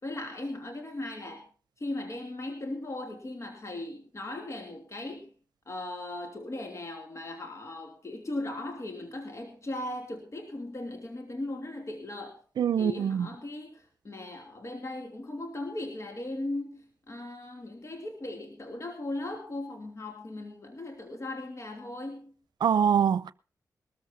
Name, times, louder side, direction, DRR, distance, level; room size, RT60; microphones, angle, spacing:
voice 1, 0.0-1.4 1.8-5.3 5.7-12.4 12.7-22.3, left 2 dB, 45° left, 2.8 m, -38 dB
voice 2, 12.6-13.3 22.6-23.3, right 8 dB, 85° right, 0.6 m, -24 dB
21.5 x 14.0 x 2.7 m
cardioid pair, 60°, 7 cm